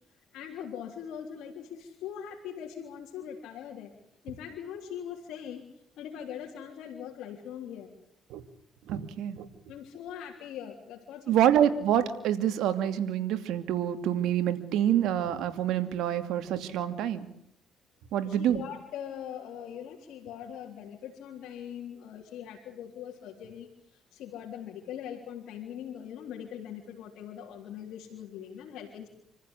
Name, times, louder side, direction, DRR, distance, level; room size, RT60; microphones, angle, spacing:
voice 1, 0.3-3.9 4.2-5.7 6.0-7.9 9.7-11.5 18.2-29.1, left 9 dB, 80° left, -1 dB, 3.5 m, -41 dB
voice 2, 8.9-9.5 11.3-17.3 18.1-18.6, right 10 dB, 80° right, 9 dB, 2.6 m, -27 dB
27.5 x 15.0 x 10.0 m, 0.70 s
cardioid pair, 90°, 0 cm